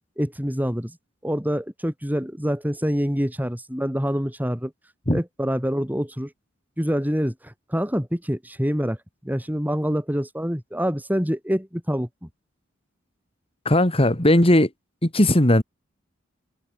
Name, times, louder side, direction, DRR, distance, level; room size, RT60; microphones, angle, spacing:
voice 1, 0.2-1.0 1.2-4.7 5.1-6.3 6.8-9.0 9.2-12.3, equal, 10° right, 5.4 m, -26 dB
voice 2, 13.6-14.7 15.0-15.6, left 1 dB, 30° left, 2.8 m, -17 dB
head